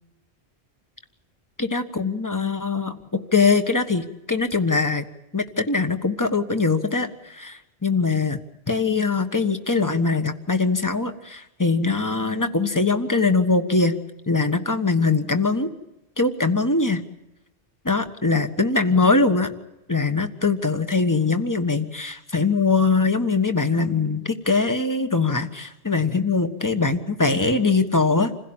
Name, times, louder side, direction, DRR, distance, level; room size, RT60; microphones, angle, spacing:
voice 1, 1.6-5.0 5.3-8.4 8.7-14.0 14.3-15.7 16.2-17.0 17.8-19.5 19.9-28.4, left 4 dB, 15° left, 8 dB, 1.4 m, -22 dB
27.5 x 16.5 x 8.9 m, 0.97 s
omnidirectional pair, 1.1 m